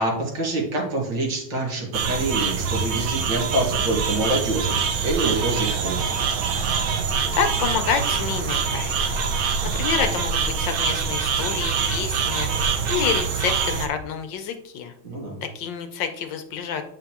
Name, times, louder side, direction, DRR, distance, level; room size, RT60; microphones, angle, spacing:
voice 1, 0.0-6.2 15.0-15.4, right 2 dB, 65° right, -1 dB, 2.4 m, -26 dB
sound 1, 1.9-13.9, right 6 dB, 85° right, 1.7 m, -24 dB
voice 2, 7.3-9.5 9.7-14.9 15.5-16.8, left 7 dB, 70° left, 7 dB, 1.3 m, -28 dB
9.0 x 5.2 x 2.9 m, 0.74 s
omnidirectional pair, 2.2 m